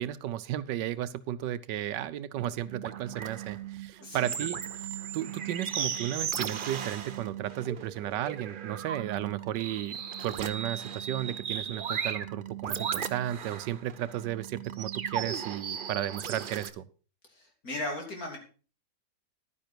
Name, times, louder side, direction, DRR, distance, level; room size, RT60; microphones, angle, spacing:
voice 1, 0.0-4.6 5.1-16.8, right 12 dB, 85° right, 15 dB, 1.3 m, -34 dB
sound 1, 2.4-16.7, right 8 dB, 60° right, 0.5 m, -36 dB
voice 2, 4.0-4.3 17.3-18.4, left 1 dB, 55° left, 1 dB, 3.6 m, -37 dB
11.0 x 9.9 x 4.5 m, 0.37 s
omnidirectional pair, 1.8 m